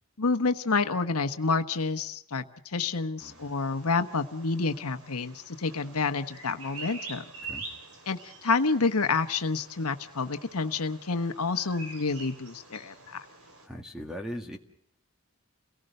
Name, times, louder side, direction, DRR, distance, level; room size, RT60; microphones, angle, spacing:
voice 1, 0.2-7.2 8.1-13.2, left 4 dB, 85° left, 7 dB, 1.2 m, -29 dB
Bird vocalization bird call bird song, 3.2-13.7, right 3 dB, 70° right, 5.2 m, -46 dB
voice 2, 13.6-14.6, equal, 5° right, 3 dB, 2.0 m, -39 dB
30.0 x 18.0 x 6.6 m, 0.67 s
head